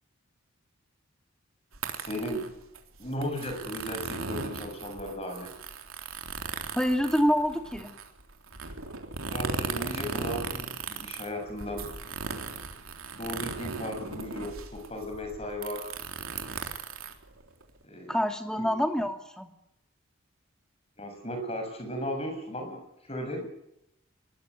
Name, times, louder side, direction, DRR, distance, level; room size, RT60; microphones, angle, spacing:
sound 1, 1.7-17.8, right 4 dB, 90° right, 3.7 m, -37 dB
voice 1, 2.0-2.5 3.0-5.5 9.3-11.9 13.1-15.9 17.8-18.1 18.6-18.7 21.0-22.8 23.1-23.5, equal, 30° left, 5 dB, 7.0 m, -36 dB
voice 2, 6.7-8.0 18.1-19.5, equal, 5° left, 5 dB, 2.6 m, -26 dB
23.5 x 21.5 x 9.5 m, 0.82 s
head